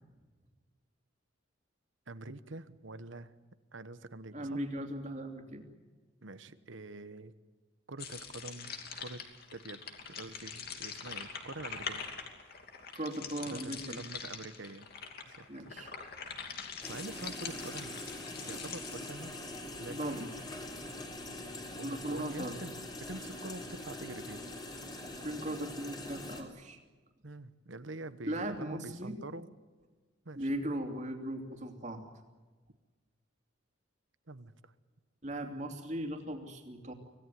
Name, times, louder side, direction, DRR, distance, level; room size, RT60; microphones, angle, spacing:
voice 1, 2.1-3.3 3.7-4.6 6.2-7.3 7.9-9.8 10.1-12.1 13.5-14.9 15.3-15.5 16.9-19.3 19.8-20.3 21.7-22.7 23.0-24.5 27.2-29.5 30.2-30.5 34.3-34.7, right 2 dB, 70° right, 13 dB, 1.2 m, -45 dB
voice 2, 4.3-5.6 12.9-14.1 15.5-16.1 19.9-20.3 21.8-22.6 25.2-26.8 28.3-29.1 30.3-32.0 35.2-36.9, right 1 dB, 35° right, 4 dB, 2.9 m, -38 dB
sound 1, 8.0-19.6, left 6 dB, 50° left, 2.7 m, -44 dB
sound 2, 16.8-26.4, left 1 dB, 20° left, 3.5 m, -43 dB
26.0 x 17.5 x 9.3 m, 1.3 s
head